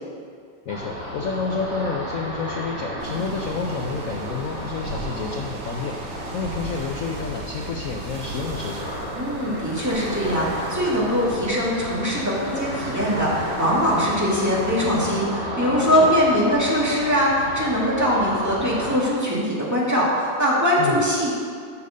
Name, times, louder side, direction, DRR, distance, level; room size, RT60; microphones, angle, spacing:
voice 1, 0.7-8.9 15.9-16.1 20.8-21.0, left 5 dB, 85° left, 2 dB, 0.7 m, -30 dB
Ocean, 0.7-18.9, equal, 35° right, 3.1 m, -33 dB
sound 1, 3.0-15.2, right 3 dB, 80° right, 1.8 m, -37 dB
voice 2, 9.1-21.3, equal, 10° right, -7 dB, 1.9 m, -22 dB
7.3 x 6.7 x 6.4 m, 2.2 s
omnidirectional pair, 2.1 m